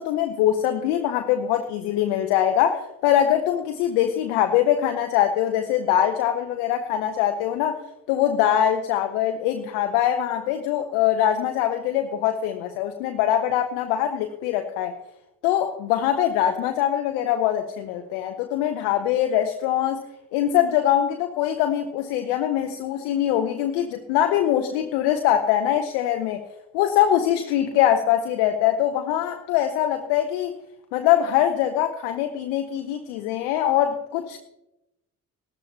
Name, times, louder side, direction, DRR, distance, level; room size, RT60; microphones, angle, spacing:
voice 1, 0.0-7.8 8.1-14.9 15.4-20.0 20.3-26.4 26.7-30.5 30.9-34.4, left 11 dB, 70° left, 5 dB, 1.0 m, -23 dB
19.0 x 13.5 x 2.8 m, 0.89 s
figure-of-eight pair, 45°, 44 cm